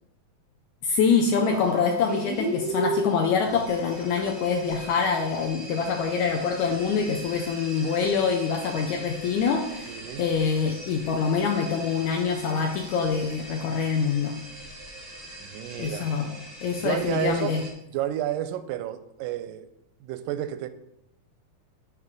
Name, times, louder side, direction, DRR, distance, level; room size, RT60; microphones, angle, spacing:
voice 1, 0.8-9.9 10.2-14.4 15.8-16.3 16.6-17.6, left 5 dB, 80° left, 2 dB, 1.7 m, -25 dB
sound 1, 1.0-17.7, right 2 dB, ahead, 0.6 m, -38 dB
voice 2, 9.9-10.3 15.4-16.2 16.8-17.5 17.9-19.7 20.0-20.7, right 12 dB, 80° right, 11 dB, 1.9 m, -31 dB
9.0 x 3.2 x 6.3 m, 0.82 s
omnidirectional pair, 4.1 m